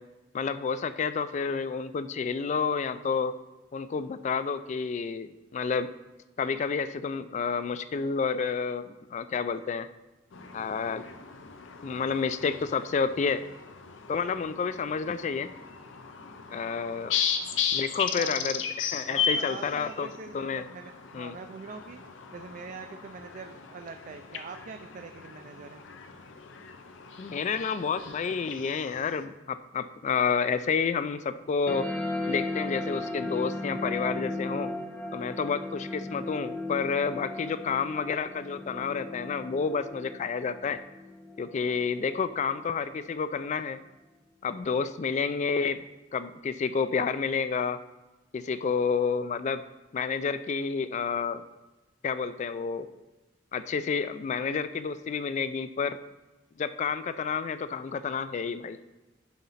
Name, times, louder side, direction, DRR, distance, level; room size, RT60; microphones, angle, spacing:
voice 1, 0.3-3.3 3.7-5.9 6.4-9.9 10.5-11.1 11.8-13.5 14.1-15.5 16.5-17.1 17.7-20.1 20.3-20.6 21.1-21.4 27.2-31.9 32.3-34.7 35.1-40.8 41.4-43.8 44.4-45.8 46.1-47.8 48.3-49.6 49.9-51.4 52.0-52.9 53.5-56.0 56.6-58.8, left 5 dB, 40° left, 13 dB, 0.3 m, -30 dB
sound 1, 10.3-29.2, left 7 dB, 80° left, 0.6 m, -36 dB
voice 2, 18.1-18.6 19.1-25.8, right 4 dB, 40° right, 6 dB, 0.3 m, -44 dB
sound 2, 31.7-42.7, left 2 dB, 10° left, 0.7 m, -36 dB
10.5 x 4.1 x 4.0 m, 1.1 s
head